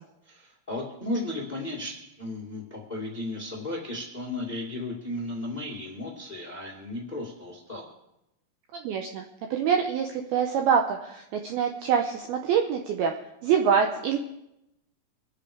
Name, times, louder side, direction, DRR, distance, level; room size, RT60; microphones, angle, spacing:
voice 1, 0.2-7.9, left 1 dB, 20° left, -3 dB, 1.0 m, -35 dB
voice 2, 8.7-9.3 9.5-13.1 13.4-14.2, right 7 dB, 85° right, 4 dB, 2.3 m, -25 dB
25.0 x 8.3 x 5.0 m, 0.86 s
omnidirectional pair, 5.5 m